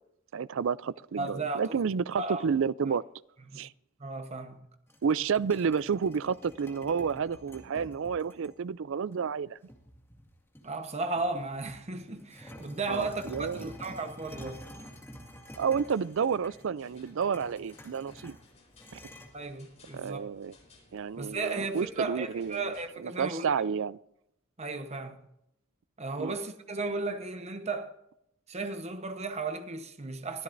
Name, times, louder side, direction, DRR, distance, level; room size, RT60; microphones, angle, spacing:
voice 1, 0.3-3.0 3.5-3.7 5.0-9.6 12.9-13.7 15.6-18.4 19.9-20.5 20.9-22.6 23.0-24.0 26.2-26.3, right 6 dB, 60° right, 0.4 m, -30 dB
voice 2, 1.2-1.8 2.2-2.5 3.5-3.6 4.0-4.7 10.6-14.6 19.3-20.3 21.2-23.5 24.6-25.2 26.0-28.0 28.5-30.4, right 3 dB, 30° right, 1.0 m, -35 dB
sound 1, 4.9-8.5 9.1-9.2 9.7-10.8 11.2-19.3, equal, 10° left, 2.0 m, -49 dB
sound 2, 15.9-22.9, left 2 dB, 30° left, 4.1 m, -60 dB
22.0 x 12.5 x 2.6 m
head